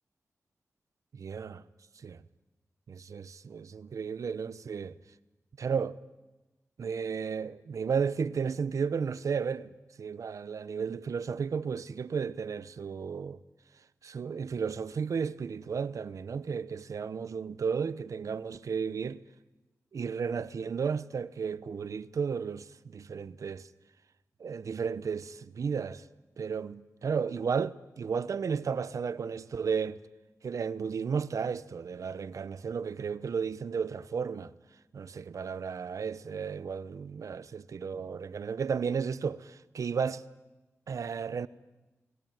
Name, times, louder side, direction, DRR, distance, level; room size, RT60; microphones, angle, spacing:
voice 1, 1.1-1.6 2.0-2.2 2.9-5.0 5.6-6.0 6.8-9.7 10.0-13.4 14.0-19.2 19.9-23.7 24.4-26.0 26.4-30.0 30.4-34.5 34.9-40.2 40.9-41.5, right 6 dB, 80° right, 0.9 m, -33 dB
30.0 x 20.5 x 9.2 m
wide cardioid pair, 100°, 5 cm